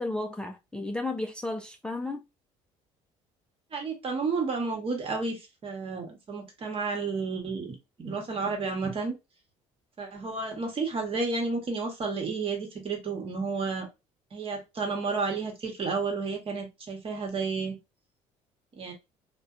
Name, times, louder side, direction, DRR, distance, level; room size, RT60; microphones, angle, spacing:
voice 1, 0.0-2.2, left 2 dB, 5° left, 0.3 m, -33 dB
voice 2, 3.7-9.1 10.0-13.9 14.3-17.8 18.7-18.9, right 4 dB, 40° right, 1.0 m, -31 dB
2.6 x 2.1 x 2.4 m
supercardioid pair, 90°, 14 cm